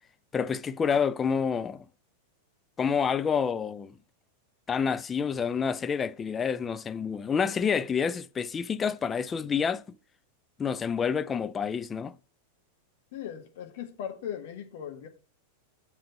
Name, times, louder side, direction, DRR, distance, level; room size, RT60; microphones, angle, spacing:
voice 1, 0.3-1.8 2.8-3.9 4.7-9.8 10.6-12.1, left 6 dB, 20° left, 0.4 m, -28 dB
voice 2, 13.1-15.1, left 9 dB, 50° left, 1.7 m, -38 dB
7.1 x 5.1 x 6.8 m
figure-of-eight pair, 90°, 0 cm